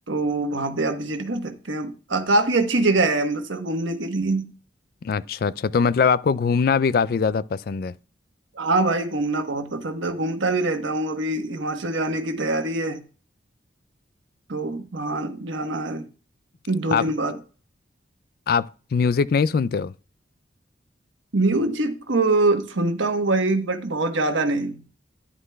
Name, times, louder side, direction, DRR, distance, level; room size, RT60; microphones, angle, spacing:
voice 1, 0.1-4.5 8.5-13.0 14.5-16.1 16.7-17.4 21.3-24.8, right 2 dB, 80° right, 1.2 m, -24 dB
voice 2, 5.0-7.9 16.9-17.0 18.5-19.9, left 5 dB, 50° left, 0.3 m, -22 dB
11.0 x 9.8 x 2.3 m
head